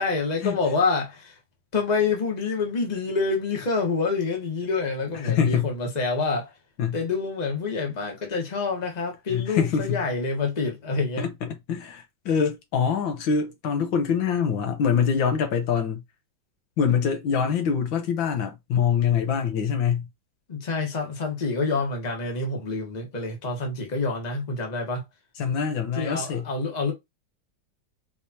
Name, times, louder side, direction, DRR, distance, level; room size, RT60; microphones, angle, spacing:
voice 1, 0.0-1.4 1.7-6.5 6.9-11.2 20.5-25.0 26.0-26.9, left 4 dB, 25° left, 1.2 m, -27 dB
voice 2, 5.1-5.7 6.8-7.0 9.3-10.0 11.2-16.0 16.8-20.1 25.4-26.5, left 7 dB, 80° left, 1.8 m, -24 dB
4.9 x 3.3 x 2.8 m
omnidirectional pair, 2.1 m